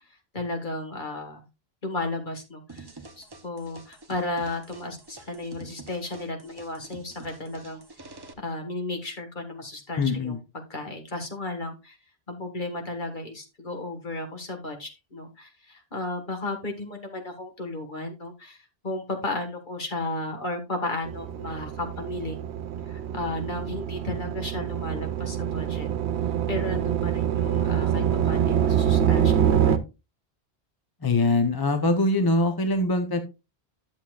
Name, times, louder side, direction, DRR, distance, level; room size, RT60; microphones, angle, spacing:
voice 1, 0.0-1.5 1.8-2.9 3.2-7.8 8.4-10.4 10.7-12.0 12.3-22.4 22.8-25.9 26.5-29.9, left 2 dB, 50° left, 4 dB, 1.9 m, -34 dB
sound 1, 2.7-8.3, right 3 dB, 25° right, 0.8 m, -47 dB
voice 2, 10.0-10.4 31.0-33.2, left 2 dB, 25° left, 7 dB, 0.7 m, -23 dB
sound 2, 21.1-29.8, right 9 dB, 85° right, 1.0 m, -25 dB
11.5 x 7.1 x 2.4 m, 0.27 s
omnidirectional pair, 1.1 m